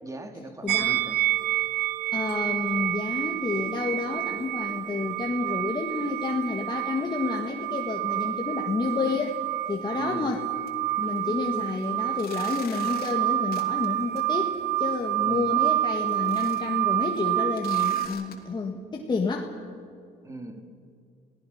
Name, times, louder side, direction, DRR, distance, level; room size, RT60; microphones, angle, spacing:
voice 1, 0.0-1.1 9.9-10.3 11.2-11.6 15.2-15.5 20.2-20.6, right 2 dB, 20° right, 5 dB, 2.5 m, -39 dB
voice 2, 0.6-1.0 2.1-9.4 9.7-10.5 11.0-19.5, left 4 dB, 25° left, 0 dB, 1.8 m, -30 dB
sound 1, 0.7-18.1, right 15 dB, 75° right, 1.1 m, -28 dB
sound 2, 8.9-9.3 9.7-9.8 10.3-10.4 10.7-18.3, left 7 dB, 60° left, 2.9 m, -48 dB
28.0 x 18.0 x 5.8 m, 2.3 s
cardioid pair, 110°, 17 cm